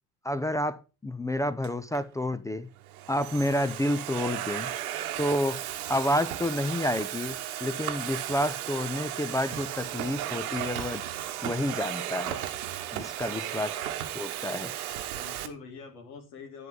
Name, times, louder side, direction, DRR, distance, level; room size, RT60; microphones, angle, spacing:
voice 1, 0.2-2.7 3.1-4.7 5.2-5.6 5.9-11.0 11.4-12.4 12.9-13.7 14.1-14.7, left 1 dB, 10° left, 0.4 m, -29 dB
Domestic sounds home sounds, 1.6-2.0 2.8-15.5, right 12 dB, 70° right, 1.1 m, -35 dB
voice 2, 13.2-13.5 15.1-16.7, left 4 dB, 70° left, 2.3 m, -45 dB
10.5 x 3.9 x 7.2 m
figure-of-eight pair, 60°, 45 cm